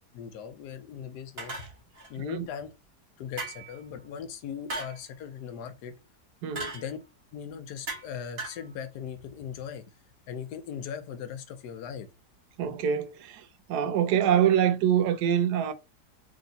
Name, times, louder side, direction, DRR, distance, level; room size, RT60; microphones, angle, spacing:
voice 1, 0.1-1.6 2.1-2.7 3.2-5.9 6.7-7.0 7.3-9.8 10.3-12.1, left 8 dB, 80° left, 1.3 m, -39 dB
sound 1, 1.4-2.1 3.4-3.8 4.7-5.0 6.6-6.9 7.9-8.1 8.4-8.6, right 3 dB, 40° right, 1.3 m, -37 dB
voice 2, 12.6-15.7, right 9 dB, 80° right, 1.2 m, -25 dB
3.5 x 2.7 x 3.9 m
omnidirectional pair, 1.7 m